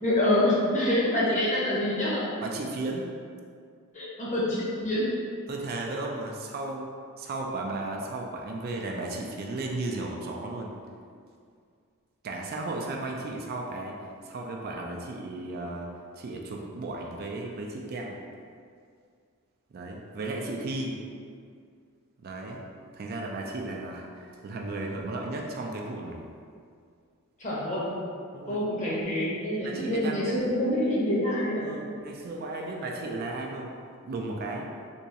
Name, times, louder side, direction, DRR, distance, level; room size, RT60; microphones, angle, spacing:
voice 1, 0.0-2.3 3.9-5.2 27.4-27.9 28.5-31.7, left 1 dB, 35° left, -7 dB, 0.9 m, -26 dB
voice 2, 2.4-3.1 5.5-6.9 7.2-10.8 12.2-14.0 14.2-18.2 19.7-21.0 22.2-22.6 22.9-26.3 28.3-28.6 29.6-30.2 31.6-33.7 34.0-34.7, right 2 dB, 45° right, 0 dB, 0.4 m, -35 dB
3.5 x 3.0 x 2.8 m, 2.2 s
head